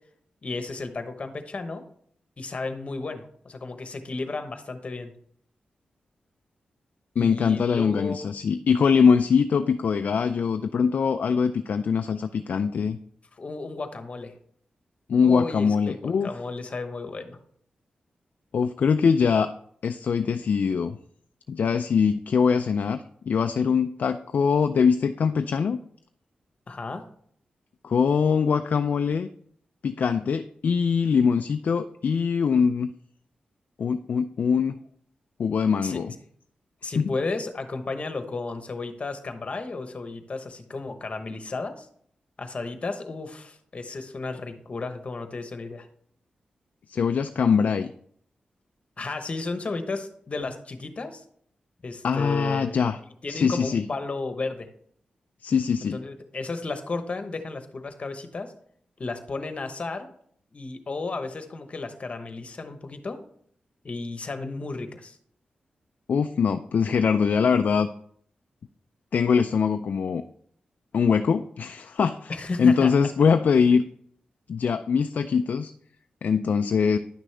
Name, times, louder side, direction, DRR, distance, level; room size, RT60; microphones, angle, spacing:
voice 1, 0.4-1.8 2.4-5.1 7.2-8.3 13.4-14.3 15.2-17.4 26.7-27.0 35.8-36.0 36.8-41.9 42.4-45.9 49.0-51.2 51.8-52.9 53.2-54.7 55.9-58.5 59.0-60.1 60.5-63.2 63.8-65.2 72.3-72.9, left 3 dB, 45° left, 8 dB, 1.0 m, -33 dB
voice 2, 7.2-13.0 15.1-16.3 18.5-19.5 19.8-21.0 21.5-25.8 27.8-29.3 29.8-32.9 33.8-34.8 35.4-36.1 37.0-37.1 46.9-47.9 52.0-53.0 53.3-53.9 55.4-56.0 66.1-67.9 69.1-70.2 70.9-72.3 72.6-73.8 74.5-75.7 76.2-77.0, left 6 dB, 70° left, 8 dB, 0.4 m, -22 dB
10.0 x 6.2 x 3.3 m, 0.64 s
cardioid pair, 85°, 3 cm